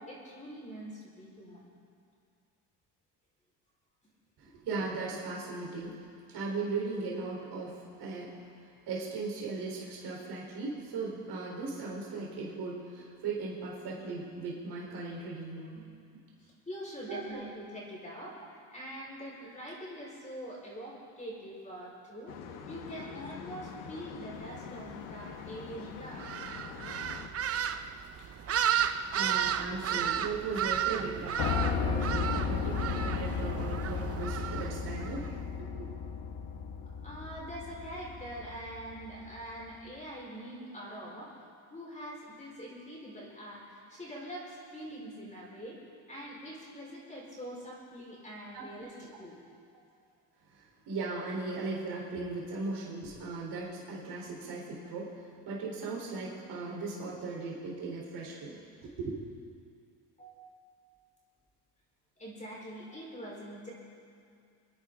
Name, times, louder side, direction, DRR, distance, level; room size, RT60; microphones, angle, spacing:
voice 1, 0.0-1.7 16.4-26.4 37.0-41.4 41.7-45.8 46.1-49.4 60.2-60.5 62.2-63.7, equal, 15° left, -5 dB, 4.8 m, -44 dB
voice 2, 4.4-6.0 6.3-8.3 8.9-15.7 17.1-17.4 29.1-35.2 35.6-35.9 48.5-48.7 48.9-49.1 50.5-55.1 55.4-59.2, right 3 dB, 60° right, -4 dB, 4.2 m, -38 dB
sound 1, 22.3-27.3, left 7 dB, 85° left, 1.4 m, -45 dB
sound 2, 26.2-35.3, right 9 dB, 35° right, 0.6 m, -33 dB
Piano, 31.4-39.4, left 6 dB, 55° left, 1.3 m, -34 dB
27.5 x 10.5 x 3.8 m, 2.4 s
cardioid pair, 105°, 44 cm